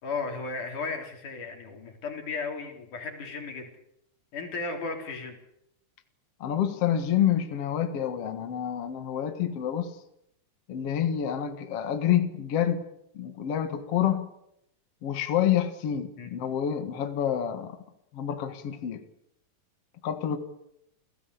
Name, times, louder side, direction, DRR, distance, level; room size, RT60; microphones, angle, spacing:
voice 1, 0.0-3.7 4.3-5.4 16.2-16.3, left 4 dB, 90° left, 3 dB, 5.3 m, -35 dB
voice 2, 6.4-9.9 10.7-12.8 13.1-14.3 15.0-17.8 18.1-19.0 20.0-20.4, left 10 dB, 55° left, 8 dB, 2.5 m, -28 dB
29.5 x 17.5 x 8.4 m, 0.80 s
omnidirectional pair, 3.5 m